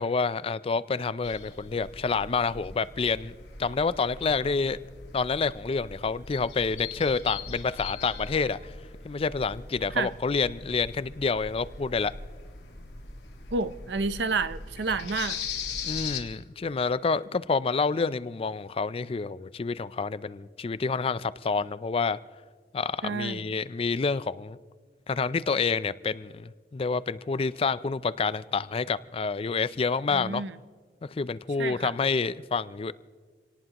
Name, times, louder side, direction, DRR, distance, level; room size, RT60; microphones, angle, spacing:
voice 1, 0.0-4.8 5.1-8.7 9.0-12.1 15.8-22.2 22.7-24.6 25.1-30.4 31.1-32.9, left 4 dB, 35° left, 0.4 m, -28 dB
sound 1, 1.2-16.2, left 5 dB, 80° left, 1.7 m, -40 dB
voice 2, 13.5-15.4 23.0-23.5 30.1-30.5 31.6-31.9, right 4 dB, 85° right, 0.7 m, -30 dB
26.5 x 18.5 x 3.0 m
head